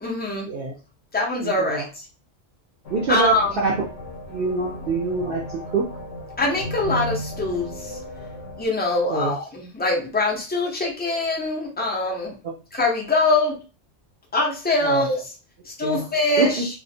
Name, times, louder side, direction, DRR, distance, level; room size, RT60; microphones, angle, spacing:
voice 1, 0.0-0.5 1.1-1.8 3.1-3.5 4.6-4.7 6.4-7.7 8.6-12.3 12.7-13.6 14.3-15.2 15.8-16.6, left 2 dB, 15° left, -2 dB, 0.4 m, -23 dB
voice 2, 1.4-1.9 2.9-3.9 4.3-5.9 9.1-9.4 12.4-12.5 14.8-15.1 15.8-16.1 16.4-16.7, right 3 dB, 60° right, -2 dB, 0.6 m, -25 dB
sound 1, 2.8-8.6, equal, 70° left, 0.9 m, -35 dB
2.4 x 2.0 x 2.6 m, 0.34 s
omnidirectional pair, 1.2 m